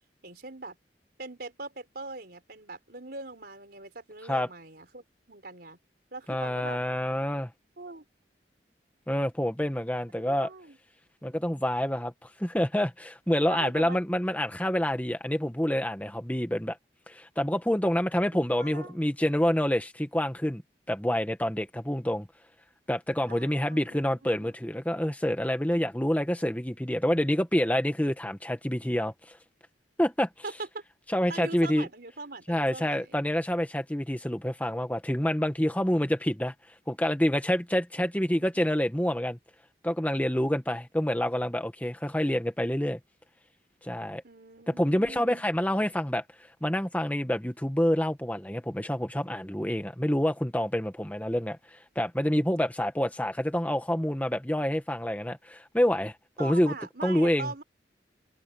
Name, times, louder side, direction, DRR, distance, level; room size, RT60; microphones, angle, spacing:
voice 1, 0.2-0.8 1.2-5.8 6.1-6.8 7.8-8.0 10.2-10.8 13.5-14.0 18.3-19.0 23.3-24.5 30.4-30.7 31.3-33.3 44.2-45.5 56.4-57.6, right 3 dB, 60° right, 4.4 m, -41 dB
voice 2, 6.3-7.5 9.1-10.5 11.2-16.8 17.1-20.6 20.9-22.3 22.9-29.4 30.0-30.3 31.1-31.9 32.5-36.5 36.9-39.4 39.8-43.0 43.8-44.2 44.7-46.2 46.6-56.7 57.0-57.5, equal, 10° left, 1.5 m, -27 dB
open air
head